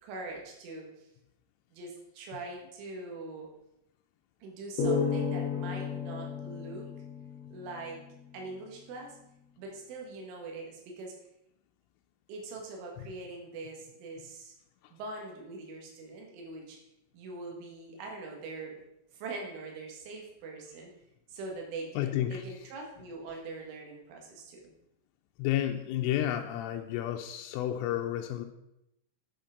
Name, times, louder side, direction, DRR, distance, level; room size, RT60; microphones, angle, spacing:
voice 1, 0.0-1.1 1.7-3.5 4.4-6.9 7.5-8.0 8.3-9.2 9.6-11.2 12.3-14.5 14.9-16.8 17.1-18.8 19.1-20.9 21.3-24.7, right 3 dB, 80° right, 0 dB, 4.1 m, -42 dB
sound 1, 4.8-8.2, left 5 dB, 65° left, 2.3 m, -33 dB
voice 2, 22.0-22.6 25.4-28.5, left 12 dB, 90° left, 4 dB, 3.2 m, -31 dB
10.5 x 6.0 x 5.1 m, 0.84 s
omnidirectional pair, 5.6 m